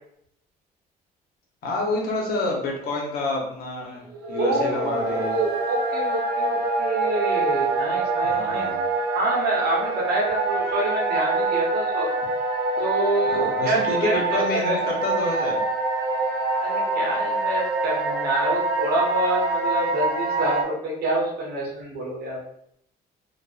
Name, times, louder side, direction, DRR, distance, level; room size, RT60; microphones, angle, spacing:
voice 1, 1.6-5.4 8.2-8.9 13.3-15.6, left 2 dB, 65° left, -1 dB, 0.8 m, -28 dB
sound 1, 4.1-20.6, right 2 dB, 85° right, 0.5 m, -25 dB
voice 2, 4.4-8.7 9.1-12.1 12.8-14.8 16.6-22.4, right 2 dB, 70° right, -3 dB, 0.9 m, -27 dB
2.4 x 2.3 x 2.3 m, 0.72 s
cardioid pair, 110°, 17 cm